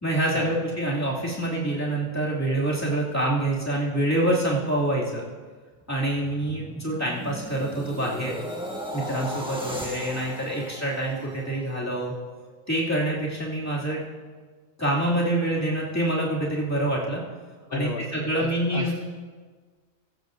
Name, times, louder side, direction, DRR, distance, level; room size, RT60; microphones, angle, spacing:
voice 1, 0.0-5.2 5.9-8.3 8.9-12.1 12.7-14.0 14.8-17.2 17.7-18.9, right 1 dB, 15° left, -5 dB, 2.5 m, -26 dB
sound 1, 5.8-12.1 12.5-12.8, equal, 5° right, 1.6 m, -37 dB
voice 2, 17.7-18.9, left 7 dB, 60° left, 3 dB, 0.9 m, -34 dB
15.5 x 14.0 x 2.6 m, 1.5 s
omnidirectional pair, 1.2 m